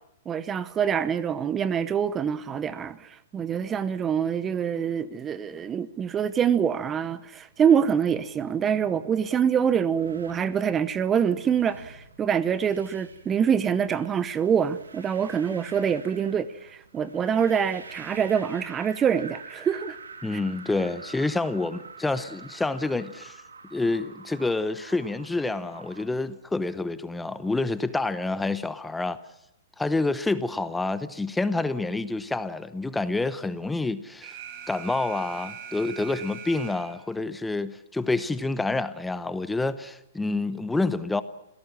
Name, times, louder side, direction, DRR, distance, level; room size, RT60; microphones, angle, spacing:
voice 1, 0.3-20.0 20.3-20.4, right 7 dB, 20° right, 0.9 m, -25 dB
sound 1, 7.5-26.0, right 4 dB, 90° right, 3.2 m, -47 dB
voice 2, 20.2-23.4 23.7-29.2 29.8-34.3 34.7-41.2, left 3 dB, 5° left, 1.0 m, -28 dB
Alarm, 34.2-37.2, right 7 dB, 45° right, 4.7 m, -41 dB
27.5 x 17.0 x 7.4 m
hypercardioid pair, 120°, 0 cm